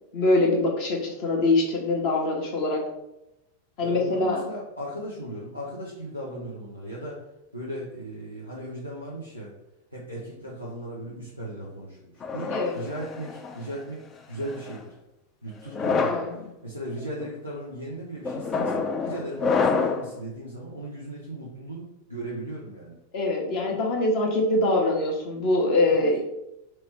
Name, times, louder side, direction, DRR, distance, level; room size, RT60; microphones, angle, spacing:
voice 1, 0.1-2.8 3.8-4.4 12.5-12.8 16.0-16.4 23.1-26.2, left 2 dB, 45° left, -1 dB, 1.2 m, -23 dB
voice 2, 3.8-7.2 7.5-9.5 9.9-14.9 15.4-16.2 16.6-23.0 25.9-26.2, right 1 dB, 90° left, -7 dB, 0.8 m, -37 dB
sound 1, 12.2-13.6 14.4-14.8 15.6-16.3 17.0-17.3 18.2-20.1, left 4 dB, 25° left, 0.4 m, -27 dB
3.1 x 3.0 x 4.6 m, 0.87 s
figure-of-eight pair, 90°, 0 cm